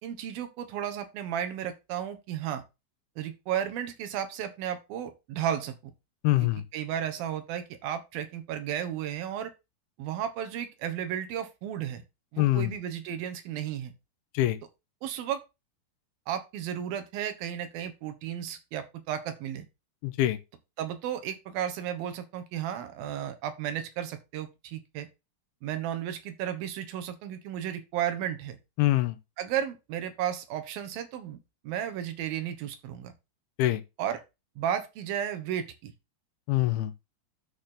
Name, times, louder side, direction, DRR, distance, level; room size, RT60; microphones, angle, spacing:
voice 1, 0.0-2.6 3.2-5.7 6.4-9.5 10.0-12.0 12.3-13.9 15.0-15.4 16.3-19.7 20.8-25.1 25.6-28.6 29.4-31.4 31.6-33.1 34.0-34.2 34.6-35.9, right 10 dB, 70° right, 2.7 m, -33 dB
voice 2, 6.2-6.6 12.4-12.7 14.3-14.6 20.0-20.4 28.8-29.2 33.6-33.8 36.5-36.9, left 15 dB, 80° left, 2.5 m, -24 dB
13.0 x 4.3 x 3.8 m
omnidirectional pair, 4.8 m